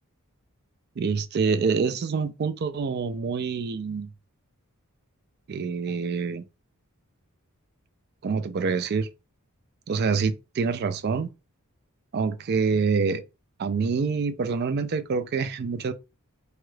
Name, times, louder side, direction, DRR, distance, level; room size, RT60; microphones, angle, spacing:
voice 1, 1.0-4.1 5.5-6.4 8.2-9.1 9.9-11.3 12.1-13.2 13.6-15.9, right 5 dB, 45° right, 0.3 m, -26 dB
2.9 x 2.3 x 3.1 m
head